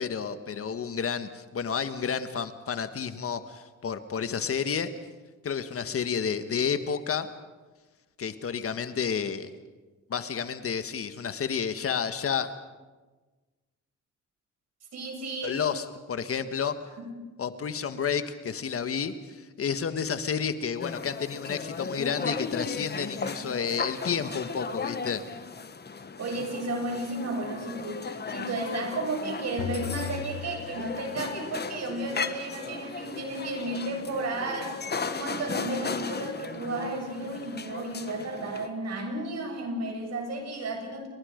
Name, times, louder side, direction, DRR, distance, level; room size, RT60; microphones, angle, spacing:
voice 1, 0.0-4.9 5.4-7.3 8.2-9.5 10.1-12.5 15.4-16.7 17.4-25.2, left 7 dB, 50° left, 10 dB, 1.5 m, -30 dB
voice 2, 14.9-15.6 17.0-17.3 26.2-41.1, right 2 dB, 60° right, 3 dB, 7.2 m, -33 dB
sound 1, 20.8-38.7, left 5 dB, 35° left, 1.6 m, -36 dB
sound 2, 29.6-31.5, left 8 dB, 80° left, 2.2 m, -37 dB
29.5 x 24.0 x 5.2 m, 1.3 s
cardioid pair, 90°, 30 cm